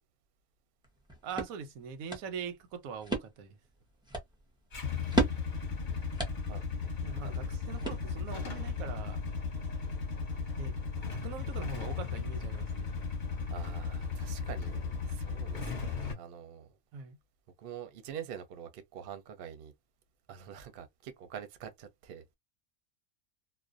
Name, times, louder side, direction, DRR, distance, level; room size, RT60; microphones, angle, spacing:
sound 1, 0.8-8.5, right 2 dB, 5° right, 0.4 m, -37 dB
voice 1, 1.2-3.6 7.0-9.2 10.6-10.8 11.1-12.9 16.9-17.2, right 6 dB, 90° right, 1.0 m, -42 dB
Motorcycle / Engine starting / Idling, 4.7-16.1, left 5 dB, 40° left, 0.8 m, -36 dB
voice 2, 6.5-6.9 7.2-7.5 13.5-16.8 17.6-19.7 20.3-22.4, right 8 dB, 60° right, 0.6 m, -46 dB
2.5 x 2.1 x 2.4 m
omnidirectional pair, 1.4 m